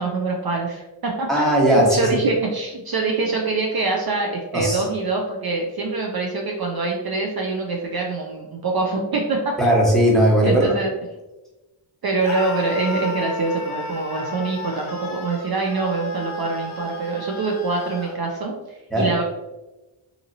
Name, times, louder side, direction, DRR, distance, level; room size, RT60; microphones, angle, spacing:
voice 1, 0.0-1.4 1.9-9.5 10.4-10.9 12.0-19.2, right 3 dB, 50° right, 0 dB, 0.5 m, -24 dB
voice 2, 1.3-2.2 4.5-4.8 9.6-10.7 18.9-19.1, right 1 dB, ahead, -5 dB, 1.0 m, -17 dB
Screaming, 12.2-18.2, left 1 dB, 85° left, 0.7 m, -33 dB
2.7 x 2.7 x 2.6 m, 1.0 s
wide cardioid pair, 65°, 48 cm